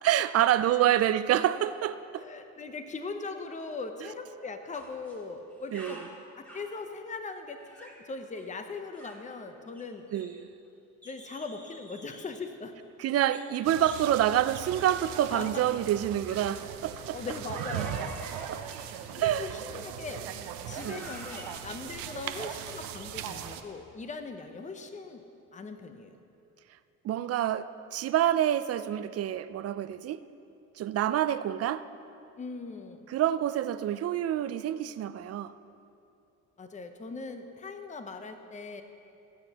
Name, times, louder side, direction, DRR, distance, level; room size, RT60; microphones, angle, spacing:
voice 1, 0.0-2.2 5.7-6.0 10.1-10.5 13.0-17.2 18.3-18.6 19.1-19.5 20.8-21.1 27.0-30.2 30.8-31.9 33.1-35.5, right 11 dB, 45° right, 14 dB, 0.4 m, -27 dB
voice 2, 2.2-6.0 6.4-10.1 11.0-12.7 15.3-15.5 17.0-18.1 19.1-20.4 20.7-25.2 25.5-26.1 32.4-33.1 36.6-38.8, left 4 dB, 20° left, 7 dB, 0.7 m, -40 dB
sound 1, 4.7-5.2 5.5-6.8 7.6-8.1 8.3-8.5 8.9-9.3 9.7-10.7 11.0-12.4 13.3-13.5 13.8-14.1 14.7-14.9 16.3-16.6 17.5-19.1 19.9-20.1 20.6-23.0, equal, 5° left, 1.8 m, -49 dB
sound 2, 13.6-23.6, right 9 dB, 85° right, 0.7 m, -39 dB
18.0 x 8.0 x 2.9 m, 2.7 s
cardioid pair, 90°, 34 cm